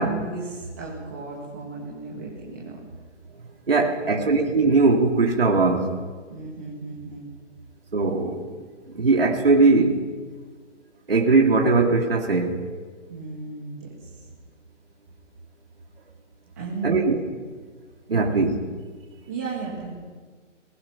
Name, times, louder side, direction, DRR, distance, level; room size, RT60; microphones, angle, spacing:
voice 1, 0.0-2.8 3.7-4.4 6.3-7.3 13.1-14.2 16.6-17.0 18.1-18.4 19.3-20.0, right 4 dB, 15° right, -5 dB, 2.0 m, -35 dB
voice 2, 3.7-5.9 7.9-8.4 8.9-10.0 11.1-12.6 16.8-17.2 18.1-18.6, right 3 dB, 50° right, 1 dB, 2.8 m, -20 dB
24.5 x 20.0 x 5.9 m, 1.5 s
hypercardioid pair, 175°, 37 cm